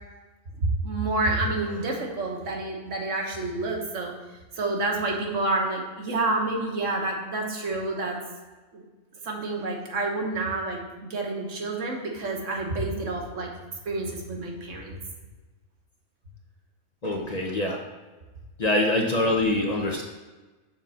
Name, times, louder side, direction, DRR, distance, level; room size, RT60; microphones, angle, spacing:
voice 1, 0.6-4.1 4.6-8.2 8.7-8.8 9.2-13.5 13.8-15.0, right 2 dB, 75° right, 0 dB, 1.5 m, -28 dB
voice 2, 17.0-17.8 18.6-20.0, left 1 dB, 40° left, 0 dB, 0.7 m, -24 dB
7.1 x 3.8 x 5.6 m, 1.2 s
omnidirectional pair, 1.3 m